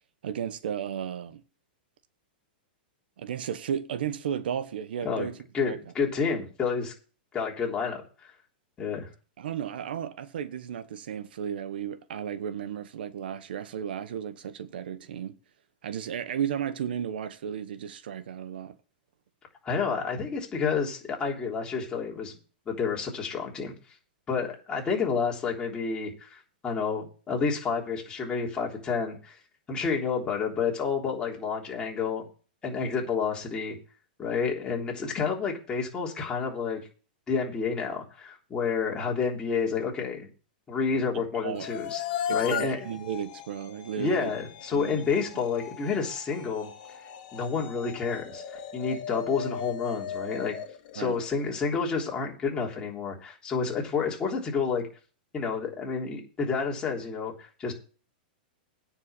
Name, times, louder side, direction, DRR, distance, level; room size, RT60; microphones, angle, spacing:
voice 1, 0.2-1.4 3.2-5.4 5.6-5.8 9.4-15.4 15.8-18.8 41.1-41.7 42.3-44.3 44.7-45.0 51.0-51.2, right 8 dB, 75° right, 1.0 m, -34 dB
voice 2, 5.5-6.9 7.3-8.0 8.8-9.1 19.6-22.4 22.7-23.7 24.3-29.4 29.7-32.2 32.6-33.8 34.2-36.8 37.3-40.3 40.7-42.0 42.3-42.9 44.0-46.7 47.3-50.5 50.9-54.8 55.3-57.7, left 5 dB, 15° left, 3.4 m, -29 dB
sound 1, 41.5-51.7, left 9 dB, 50° left, 2.0 m, -37 dB
9.6 x 5.5 x 8.3 m
hypercardioid pair, 145°, 5 cm